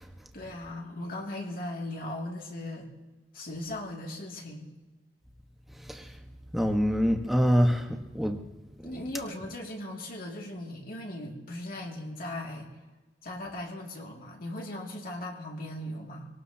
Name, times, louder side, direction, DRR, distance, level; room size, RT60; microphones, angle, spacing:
voice 1, 0.3-2.9 3.3-4.7 8.8-12.7 13.2-16.3, left 1 dB, 55° left, -1 dB, 2.5 m, -38 dB
voice 2, 6.5-8.4 8.9-9.0, equal, ahead, 3 dB, 1.3 m, -25 dB
25.0 x 18.5 x 2.9 m, 1.2 s
head